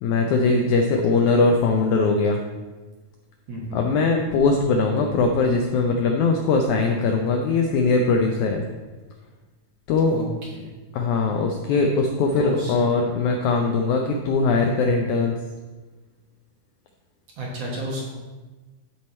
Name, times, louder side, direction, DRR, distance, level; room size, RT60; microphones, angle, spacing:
voice 1, 0.0-2.4 3.7-8.6 9.9-10.2 10.9-15.4, left 3 dB, 80° left, 3 dB, 1.7 m, -21 dB
voice 2, 3.5-3.8 10.1-10.7 12.4-12.9 17.4-18.1, right 1 dB, 55° right, -3 dB, 2.0 m, -32 dB
13.0 x 4.7 x 4.2 m, 1.3 s
omnidirectional pair, 4.1 m